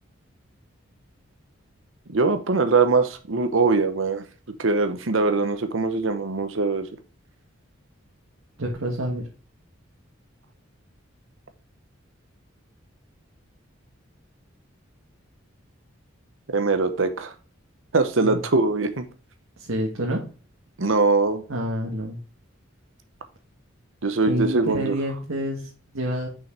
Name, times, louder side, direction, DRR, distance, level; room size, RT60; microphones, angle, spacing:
voice 1, 2.1-4.2 4.6-6.9 16.5-17.3 17.9-19.1 20.8-21.4 24.0-24.8, right 3 dB, 70° right, 9 dB, 0.9 m, -22 dB
voice 2, 8.6-9.2 18.2-18.4 19.6-20.2 21.5-22.2 24.3-26.3, equal, 85° right, -2 dB, 1.8 m, -28 dB
6.3 x 5.7 x 4.3 m, 0.37 s
head